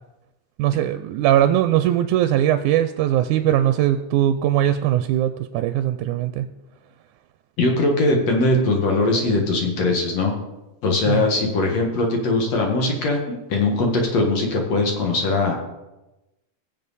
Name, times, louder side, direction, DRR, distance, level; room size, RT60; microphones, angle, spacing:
voice 1, 0.6-6.5 11.1-11.3, right 12 dB, 80° right, 10 dB, 1.9 m, -20 dB
voice 2, 7.6-10.4 10.8-15.6, left 2 dB, 55° left, 1 dB, 2.7 m, -21 dB
20.5 x 7.4 x 4.2 m, 1.0 s
omnidirectional pair, 3.7 m